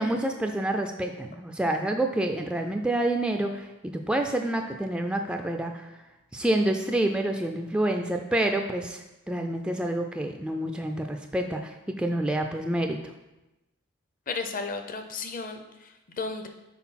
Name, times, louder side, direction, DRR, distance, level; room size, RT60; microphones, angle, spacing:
voice 1, 0.0-5.9 6.3-9.0 9.3-13.0, right 1 dB, 5° right, 4 dB, 0.3 m, -28 dB
voice 2, 14.3-16.5, left 4 dB, 40° left, 6 dB, 0.7 m, -34 dB
5.9 x 4.3 x 5.8 m, 1.0 s
head